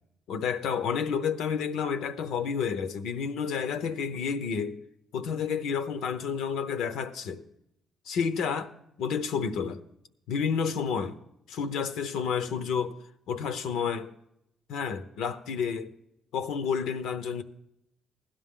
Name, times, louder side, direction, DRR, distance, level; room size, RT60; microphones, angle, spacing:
voice 1, 0.3-4.8 5.1-7.4 8.1-8.7 9.0-9.8 10.3-11.2 11.5-13.0 13.3-14.1 14.7-15.9 16.3-17.4, left 6 dB, 85° left, 0.8 m, -30 dB
16.5 x 11.5 x 3.7 m
cardioid pair, 90°, 0 cm